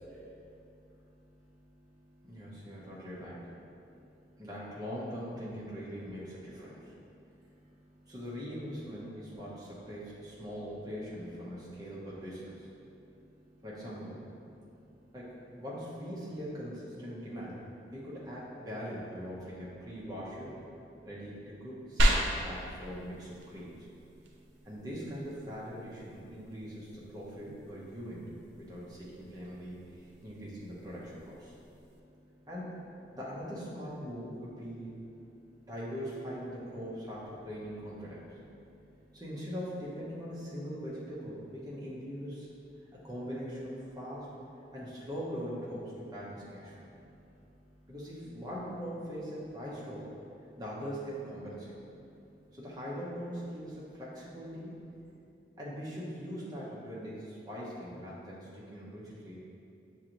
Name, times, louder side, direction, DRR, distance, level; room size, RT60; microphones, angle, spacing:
voice 1, 0.0-2.8 3.8-4.4 7.1-8.1 12.8-13.6 14.4-15.1 21.0-21.1 24.1-24.7 29.9-30.2 31.5-32.5 35.4-35.7 38.6-39.2 42.8-43.1 46.8-47.9 50.5-50.6 52.0-52.6, equal, 5° left, -10 dB, 0.4 m, -59 dB
voice 2, 2.3-3.5 4.4-6.9 8.1-12.7 13.6-14.2 15.1-17.6 17.9-20.6 21.0-23.9 24.6-28.3 28.6-31.5 32.5-32.8 33.1-34.9 35.7-38.3 39.1-42.5 42.9-44.3 44.7-46.7 47.9-50.1 50.6-51.7 52.5-54.8 55.6-59.4, equal, 20° right, -7 dB, 0.7 m, -41 dB
sound 1, 22.0-32.0, right 1 dB, 90° right, 0.5 m, -36 dB
6.2 x 2.6 x 2.9 m, 2.6 s
head